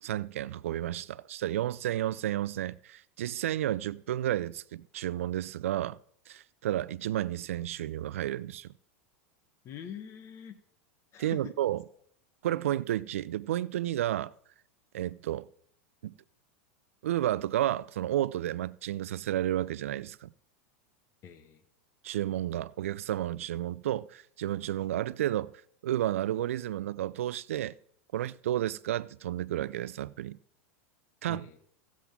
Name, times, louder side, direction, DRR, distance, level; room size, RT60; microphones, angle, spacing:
voice 1, 0.0-6.0 6.3-8.7 11.2-11.8 12.4-14.3 14.9-15.5 16.0-16.1 17.0-20.3 22.0-25.5 25.8-27.8 28.1-30.4 31.2-31.6, right 13 dB, 80° right, 0.4 m, -31 dB
voice 2, 9.6-10.6 11.1-11.5 21.2-21.6 31.3-31.6, left 8 dB, 40° left, 1.4 m, -44 dB
17.0 x 7.3 x 3.6 m
hypercardioid pair, 105°, 7 cm